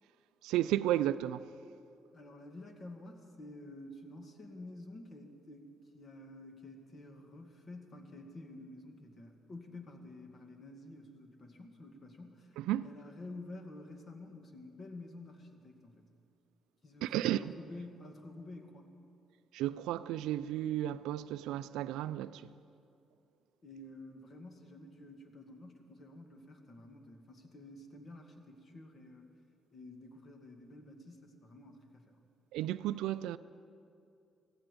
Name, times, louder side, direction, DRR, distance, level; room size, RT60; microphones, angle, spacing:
voice 1, 0.4-1.5 12.6-12.9 17.0-17.5 19.5-22.5 32.5-33.4, right 13 dB, 85° right, 0.3 m, -33 dB
voice 2, 2.1-16.1 16.8-18.9 23.6-29.3 29.7-32.2, left 2 dB, 50° left, 2.0 m, -50 dB
16.5 x 15.5 x 5.2 m
supercardioid pair, 60°, 0 cm